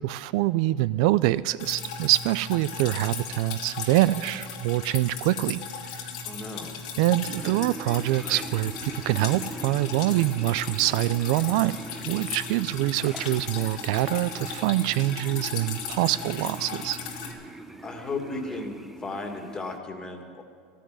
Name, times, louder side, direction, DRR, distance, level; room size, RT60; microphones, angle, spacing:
voice 1, 0.0-5.6 7.0-11.8 12.1-17.0, right 16 dB, 65° right, 17 dB, 0.4 m, -25 dB
Drip, 1.6-17.3, left 5 dB, 80° left, 2.2 m, -37 dB
voice 2, 6.2-6.8 17.8-20.4, left 3 dB, 20° left, 4 dB, 1.9 m, -35 dB
sound 1, 7.4-19.8, right 1 dB, 5° right, 0.8 m, -42 dB
13.5 x 10.0 x 9.4 m, 2.2 s
supercardioid pair, 125°, 3 cm